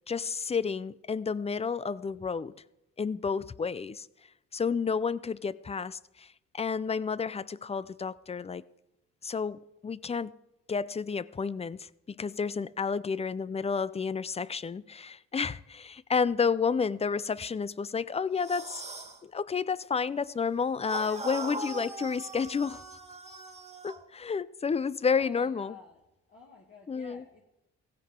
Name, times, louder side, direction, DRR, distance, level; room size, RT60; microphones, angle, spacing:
voice 1, 0.1-2.6 3.0-4.1 4.5-6.3 6.5-8.6 9.2-10.3 10.7-18.8 19.2-22.8 23.8-25.7 26.9-27.2, left 5 dB, 20° left, 0.4 m, -31 dB
sound 1, 18.4-19.2 20.8-24.0, right 2 dB, 20° right, 1.8 m, -40 dB
voice 2, 25.1-26.0 26.3-27.4, left 3 dB, 40° left, 2.1 m, -51 dB
16.0 x 15.5 x 3.7 m
cardioid pair, 90°, 30 cm